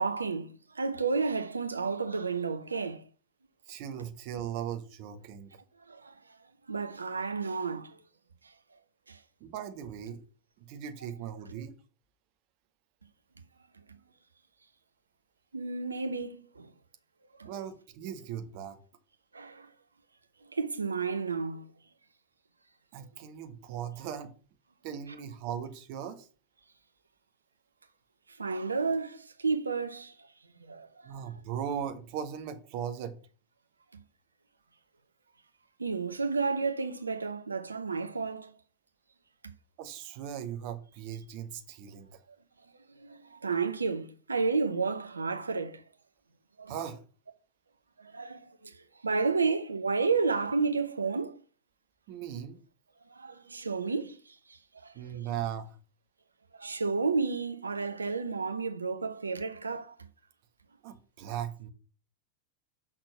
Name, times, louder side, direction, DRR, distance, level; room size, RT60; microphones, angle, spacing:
voice 1, 0.0-3.0 5.9-6.1 6.7-8.0 9.1-9.2 15.5-16.7 17.4-17.5 19.3-19.7 20.5-21.7 28.4-30.1 30.6-30.9 35.8-38.5 43.0-45.8 46.6-46.7 48.0-48.7 49.0-51.4 53.1-55.3 56.5-59.9, right 4 dB, 75° right, 0.7 m, -31 dB
voice 2, 3.7-5.5 9.4-10.2 10.6-11.7 17.4-18.8 22.9-24.3 24.8-26.3 31.0-33.2 39.8-42.2 46.7-47.0 52.1-52.6 54.9-55.8 60.8-61.7, right 9 dB, 45° right, 1.1 m, -38 dB
6.3 x 3.9 x 6.3 m
figure-of-eight pair, 90°, 0 cm